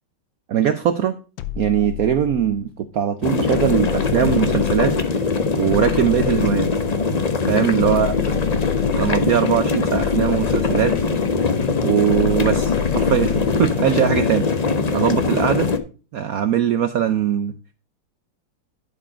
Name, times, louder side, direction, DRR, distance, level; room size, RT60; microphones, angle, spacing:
voice 1, 0.5-1.2 1.6-5.0 5.5-6.7 7.5-8.1 9.0-10.9 11.8-14.5 14.9-15.7 16.1-17.5, right 9 dB, 65° right, 10 dB, 0.9 m, -20 dB
sound 1, 1.4-2.7 3.5-5.2 5.7-7.1 7.8-9.4 9.9-11.3 12.1-13.7, left 16 dB, 90° left, 1.5 m, -30 dB
sound 2, 3.2-15.8, left 4 dB, 65° left, 0.4 m, -21 dB
11.0 x 4.9 x 4.9 m, 0.35 s
omnidirectional pair, 2.0 m